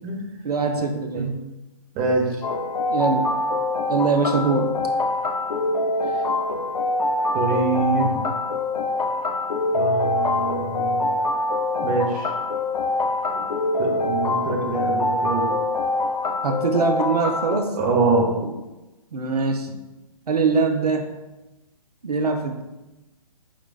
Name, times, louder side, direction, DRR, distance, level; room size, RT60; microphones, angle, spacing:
voice 1, 0.4-1.3 2.9-3.3 3.9-4.8 16.4-17.8 19.1-19.7 20.3-21.2 22.0-22.6, right 4 dB, 85° right, 5 dB, 0.6 m, -22 dB
voice 2, 1.9-2.3 7.3-8.2 9.7-11.2 11.8-12.3 13.8-15.5 17.7-18.3, right 3 dB, 25° right, 0 dB, 0.8 m, -24 dB
sound 1, 2.4-17.6, left 2 dB, 85° left, 0.5 m, -24 dB
4.7 x 3.8 x 2.3 m, 1.0 s
figure-of-eight pair, 135°, 19 cm